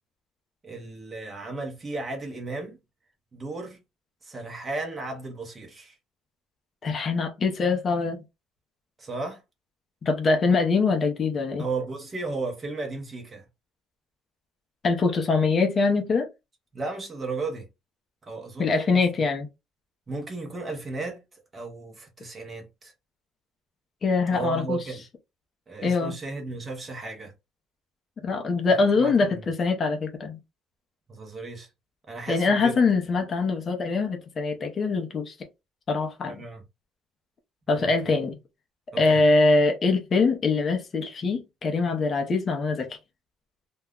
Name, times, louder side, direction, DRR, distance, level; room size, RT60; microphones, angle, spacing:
voice 1, 0.6-2.8 3.3-3.8 4.2-6.0 9.0-9.4 11.6-13.4 16.7-17.7 18.2-19.0 20.1-21.2 21.5-22.9 24.3-25.0 25.7-27.3 28.8-29.4 31.1-31.7 32.1-32.8 36.3-36.6 37.7-38.1 38.9-39.2, right 3 dB, 20° right, 0.7 m, -35 dB
voice 2, 6.8-8.2 10.0-11.6 14.8-16.3 18.6-19.5 24.0-24.8 25.8-26.1 28.2-30.4 32.3-35.3 35.9-36.4 37.7-38.4 39.0-43.0, left 4 dB, 30° left, 0.5 m, -23 dB
2.2 x 2.1 x 3.4 m
cardioid pair, 165°, 0 cm